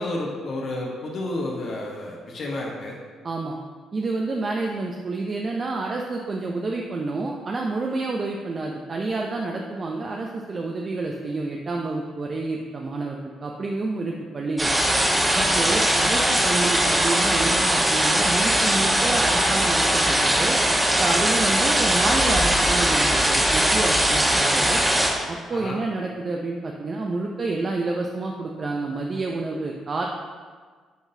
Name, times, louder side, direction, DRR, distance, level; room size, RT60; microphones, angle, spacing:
voice 1, 0.0-2.9 15.6-16.0 25.5-25.8, left 1 dB, 60° left, -2 dB, 1.0 m, -31 dB
voice 2, 3.2-3.6 3.9-14.7 15.3-20.6 21.0-24.8 25.3-30.1, right 3 dB, 40° right, 0 dB, 0.5 m, -28 dB
sound 1, 14.6-25.1, right 1 dB, 15° right, 1.2 m, -20 dB
9.1 x 3.8 x 2.7 m, 1.5 s
cardioid pair, 90°, 0 cm